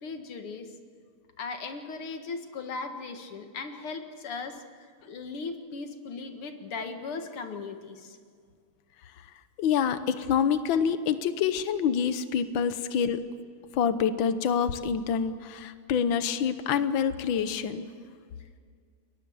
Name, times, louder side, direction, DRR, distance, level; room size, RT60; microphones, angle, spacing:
voice 1, 0.0-0.7 1.4-4.6 5.0-8.2, left 4 dB, 90° left, 6 dB, 2.6 m, -37 dB
voice 2, 9.6-13.2 13.7-17.9, left 7 dB, 70° left, 11 dB, 1.7 m, -26 dB
29.0 x 22.0 x 7.2 m, 2.1 s
omnidirectional pair, 2.3 m